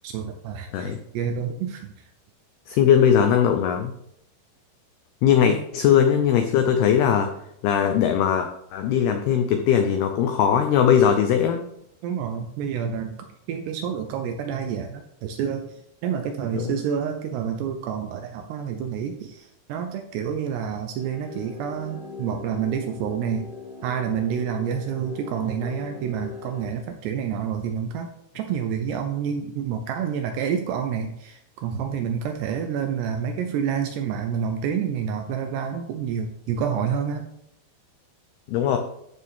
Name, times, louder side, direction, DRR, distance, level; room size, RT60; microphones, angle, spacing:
voice 1, 0.0-1.9 5.4-5.6 12.0-13.2 13.5-23.5 23.8-37.3, right 7 dB, 80° right, 5 dB, 2.5 m, -28 dB
voice 2, 2.7-3.9 5.2-7.3 7.6-11.6 16.5-16.8 38.5-38.8, left 8 dB, 90° left, 6 dB, 2.2 m, -20 dB
sound 1, 21.0-26.7, left 5 dB, 55° right, 5.1 m, -40 dB
14.0 x 6.8 x 3.6 m, 0.75 s
omnidirectional pair, 5.5 m